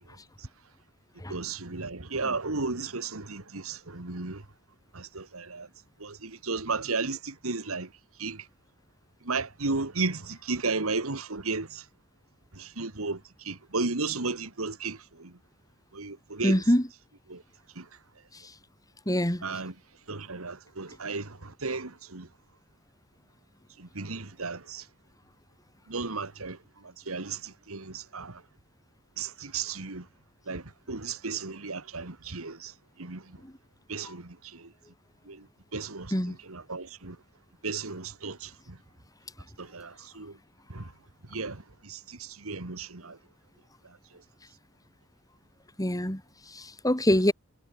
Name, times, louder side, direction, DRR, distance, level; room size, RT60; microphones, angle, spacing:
voice 1, 1.3-4.4 4.9-5.7 6.0-7.9 8.2-8.4 9.3-11.8 12.6-13.2 13.5-15.3 15.9-16.6 17.3-17.4 17.8-17.9 19.4-19.7 20.1-22.3 23.8-24.8 25.9-26.6 27.1-28.3 29.2-30.0 30.5-30.6 30.9-32.7 33.0-33.2 33.9-34.3 35.3-35.4 35.7-37.2 37.6-38.5 39.6-40.3 40.7-40.8 41.3-43.2, right 4 dB, 90° right, 2.1 m, -34 dB
voice 2, 16.4-16.9 19.1-19.4 36.1-36.3 45.8-46.2 46.8-47.3, equal, 15° left, 4.5 m, -23 dB
head